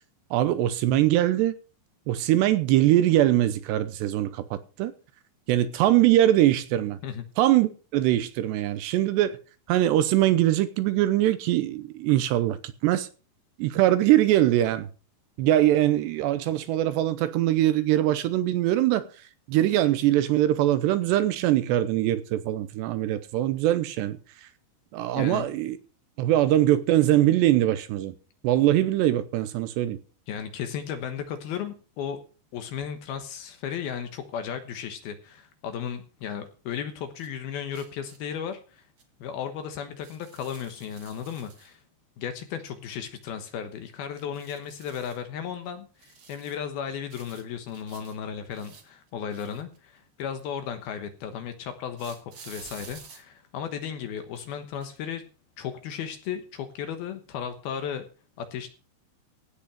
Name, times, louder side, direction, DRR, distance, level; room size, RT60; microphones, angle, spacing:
voice 1, 0.3-1.5 2.1-4.9 5.5-7.0 7.4-9.4 9.7-12.6 12.8-13.1 13.6-14.9 15.4-19.1 19.5-24.2 24.9-25.8 26.2-28.1 28.4-30.0, right 13 dB, 75° right, 2.8 m, -22 dB
voice 2, 25.2-25.5 30.3-32.2 32.5-38.8 39.2-41.8 42.2-55.2 55.6-58.1 58.4-58.7, left 8 dB, 70° left, 2.7 m, -35 dB
sound 1, 37.2-37.3 37.7-38.2 39.0-39.1 40.0-41.7 44.1-45.2 46.0-46.6 47.1-48.1 48.5-50.0 52.0-53.2 54.2-54.5 54.8-55.0, right 5 dB, 55° right, 1.4 m, -50 dB
16.5 x 6.1 x 6.5 m
omnidirectional pair, 5.2 m